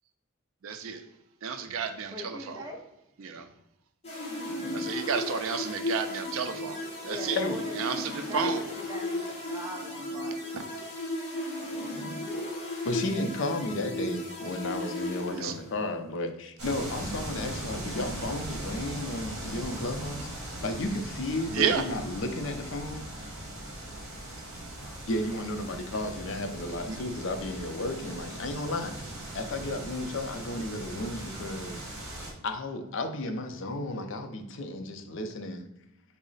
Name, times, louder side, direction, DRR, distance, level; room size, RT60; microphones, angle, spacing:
voice 1, 0.6-1.0 1.4-2.6 3.2-3.5 4.7-7.4 7.8-8.6 10.5-10.6 15.3-15.5 21.5-21.8 26.9-27.0, right 6 dB, 70° right, 7 dB, 0.4 m, -31 dB
voice 2, 2.1-2.8 7.0-7.8 8.1-10.4 10.9-11.0 12.0-12.2, left 1 dB, 15° right, -1 dB, 0.6 m, -41 dB
sound 1, 4.0-15.9, left 1 dB, 30° left, 0.7 m, -35 dB
voice 3, 12.8-23.3 25.0-28.9 29.3-31.8 32.4-35.7, left 2 dB, 60° left, 6 dB, 0.4 m, -33 dB
sound 2, 16.6-32.3, right 1 dB, 50° right, 1.1 m, -39 dB
3.8 x 2.0 x 3.9 m, 0.85 s
head